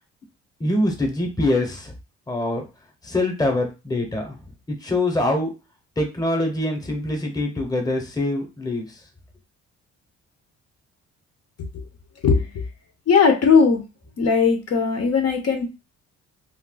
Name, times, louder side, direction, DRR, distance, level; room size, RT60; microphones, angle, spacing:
voice 1, 0.6-1.9 2.3-2.7 3.0-4.4 4.7-5.5 6.0-9.0, left 1 dB, 10° left, 3 dB, 0.9 m, -24 dB
voice 2, 12.2-12.6 13.1-13.8 14.2-15.7, left 5 dB, 55° left, 4 dB, 0.8 m, -18 dB
2.4 x 2.2 x 3.8 m, 0.29 s
cardioid pair, 90°, 30 cm